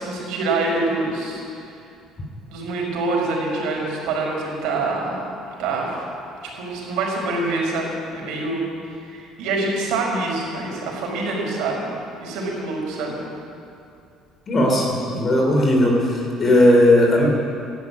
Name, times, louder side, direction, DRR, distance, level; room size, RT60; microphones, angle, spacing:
voice 1, 0.0-1.4 2.5-5.2 5.6-6.0 6.5-8.6 9.1-11.9 12.2-13.2, right 3 dB, 75° right, -2 dB, 5.1 m, -25 dB
voice 2, 14.5-17.3, left 1 dB, 35° left, -1 dB, 3.6 m, -17 dB
13.0 x 10.5 x 9.7 m, 2.5 s
cardioid pair, 120°, 0 cm